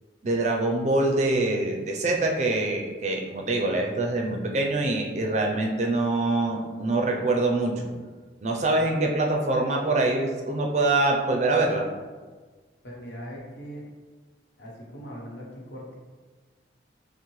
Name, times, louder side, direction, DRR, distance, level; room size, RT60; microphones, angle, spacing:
voice 1, 0.2-7.8 8.4-11.9, right 2 dB, 40° right, 1 dB, 0.4 m, -24 dB
voice 2, 12.8-13.8 14.6-15.9, equal, 75° left, -3 dB, 1.0 m, -40 dB
5.9 x 2.1 x 3.1 m, 1.4 s
head